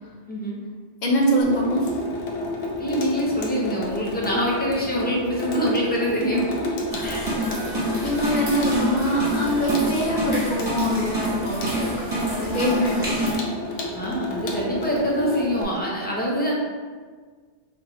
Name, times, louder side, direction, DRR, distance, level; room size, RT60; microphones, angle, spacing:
voice 1, 0.3-0.6 2.8-6.7 7.0-7.3 13.9-16.5, equal, 10° left, -5 dB, 0.4 m, -25 dB
voice 2, 1.0-2.0 7.8-13.2 13.6-13.9, equal, 45° left, -2 dB, 0.7 m, -24 dB
Water tap faucet / Sink (filling or washing), 1.4-15.6, left 1 dB, 80° left, 0.9 m, -31 dB
sound 1, 6.9-13.3, right 1 dB, 20° right, 1.0 m, -27 dB
4.4 x 2.3 x 3.0 m, 1.5 s
omnidirectional pair, 1.2 m